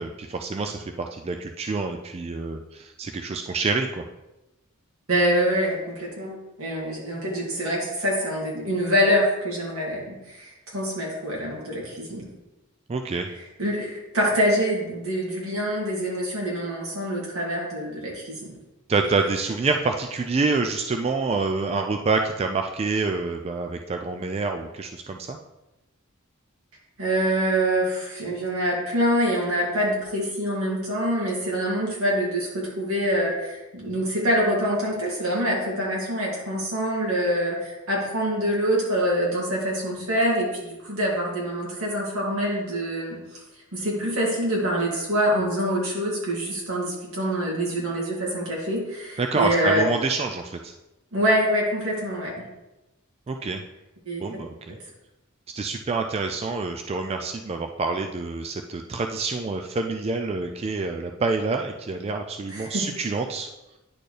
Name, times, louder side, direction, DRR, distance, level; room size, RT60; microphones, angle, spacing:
voice 1, 0.0-4.0 12.9-13.3 18.9-25.4 49.2-50.7 53.3-53.6 54.2-54.8 55.5-63.5, right 3 dB, 30° right, 4 dB, 0.3 m, -27 dB
voice 2, 5.1-12.3 13.6-18.5 27.0-43.4 43.7-49.8 51.1-52.4 54.1-54.2 62.5-62.8, equal, 80° right, -4 dB, 2.4 m, -25 dB
10.0 x 4.3 x 3.3 m, 0.99 s
head